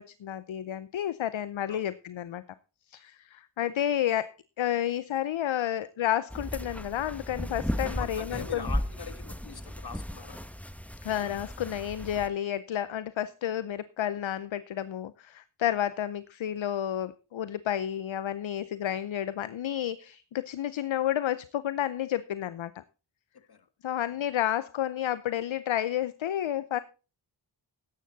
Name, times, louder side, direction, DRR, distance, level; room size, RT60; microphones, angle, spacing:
voice 1, 0.0-2.4 2.9-8.7 11.0-22.8 23.8-26.8, left 11 dB, 70° left, 15 dB, 0.7 m, -31 dB
sound 1, 6.3-12.3, equal, 5° left, 1.1 m, -35 dB
voice 2, 8.0-10.4 23.5-23.7 23.9-24.1, left 5 dB, 50° left, 11 dB, 1.6 m, -43 dB
13.5 x 10.0 x 4.0 m, 0.33 s
wide cardioid pair, 70°, 48 cm